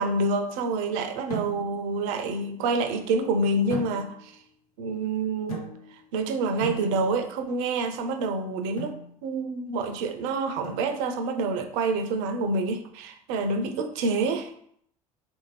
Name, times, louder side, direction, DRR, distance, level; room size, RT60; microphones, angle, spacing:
voice 1, 0.0-4.3 4.8-5.6 6.1-8.9 9.2-14.5, right 3 dB, 55° right, 8 dB, 0.5 m, -27 dB
sound 1, 1.3-1.9 3.7-4.4 5.5-6.1 6.6-7.4 8.8-9.1 10.6-11.3, right 2 dB, 80° left, 0.8 m, -38 dB
3.5 x 2.5 x 3.2 m, 0.66 s
figure-of-eight pair, 65°, 19 cm